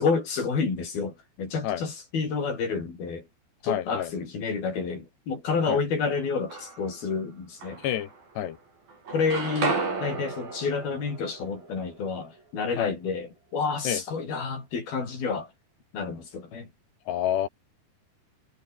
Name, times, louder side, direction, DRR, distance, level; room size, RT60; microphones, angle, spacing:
voice 1, 0.0-3.2 3.6-7.8 9.1-15.5 15.9-16.7, left 5 dB, 60° left, 8.3 m, -29 dB
voice 2, 3.7-4.1 5.7-5.8 7.8-8.1 8.4-8.6 12.8-12.9 13.9-14.0 17.1-17.5, left 11 dB, 90° left, 4.2 m, -28 dB
sound 1, 6.2-7.0 7.6-8.6 8.9-12.8, right 4 dB, 60° right, 9.5 m, -34 dB
omnidirectional pair, 4.8 m